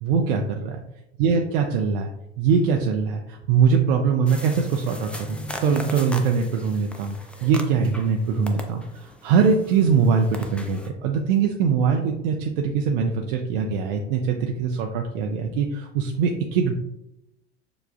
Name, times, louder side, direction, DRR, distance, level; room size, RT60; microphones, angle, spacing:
voice 1, 0.0-0.8 1.2-2.1 2.4-16.7, right 6 dB, 55° right, 3 dB, 0.5 m, -22 dB
sound 1, 4.3-8.1 8.4-10.9, right 1 dB, 5° left, 0.3 m, -36 dB
6.7 x 2.3 x 2.5 m, 0.83 s
figure-of-eight pair, 70°, 32 cm